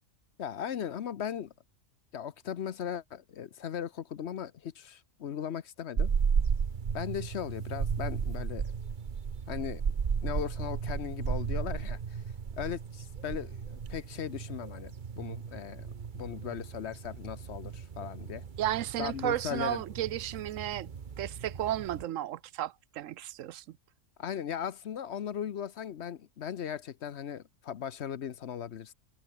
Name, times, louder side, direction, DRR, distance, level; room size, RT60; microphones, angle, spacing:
voice 1, 0.4-1.5 2.1-6.1 6.9-8.7 9.5-9.8 10.2-12.2 12.6-15.9 16.1-18.4 19.0-19.8 24.2-28.9, left 9 dB, 60° left, 1.0 m, -38 dB
sound 1, 6.0-22.1, right 6 dB, 40° right, 1.0 m, -35 dB
voice 2, 18.6-20.9 21.2-23.6, right 12 dB, 85° right, 1.0 m, -33 dB
omnidirectional pair, 1.3 m